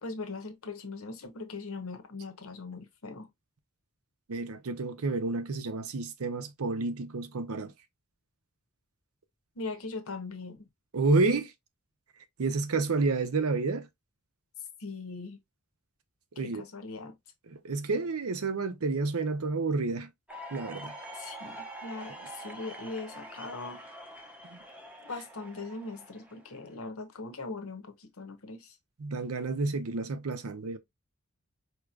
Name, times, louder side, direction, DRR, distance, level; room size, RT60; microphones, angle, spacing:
voice 1, 0.0-3.3 9.6-10.7 14.8-15.4 16.4-17.2 21.1-23.9 25.0-28.8, left 3 dB, 65° left, 0.9 m, -40 dB
voice 2, 4.3-7.7 10.9-11.5 12.4-13.9 16.4-16.6 17.5-20.1 20.5-20.9 24.5-24.6 29.0-30.8, right 3 dB, 75° right, 0.7 m, -30 dB
sound 1, 20.3-26.8, right 1 dB, 5° right, 0.7 m, -45 dB
4.6 x 2.9 x 2.4 m
head